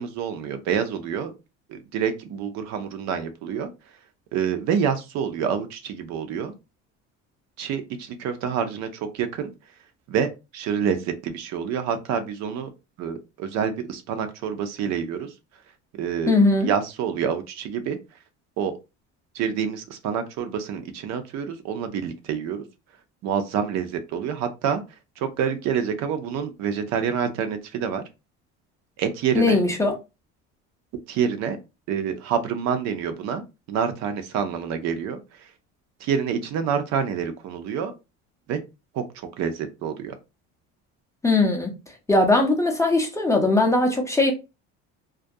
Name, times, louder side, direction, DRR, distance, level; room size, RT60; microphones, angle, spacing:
voice 1, 0.0-1.3 1.7-3.7 4.3-6.5 7.6-9.5 10.1-12.7 13.0-15.3 16.0-16.3 16.6-18.0 18.6-18.7 19.3-22.7 23.2-24.8 25.2-28.0 29.0-29.6 31.1-31.6 31.9-35.2 36.0-37.9 38.5-38.6 38.9-40.1, right 7 dB, 60° right, 0.6 m, -27 dB
voice 2, 16.3-16.7 29.3-29.9 41.2-41.7 42.1-44.3, left 2 dB, 10° left, 0.5 m, -20 dB
2.3 x 2.1 x 2.6 m
cardioid pair, 115°, 31 cm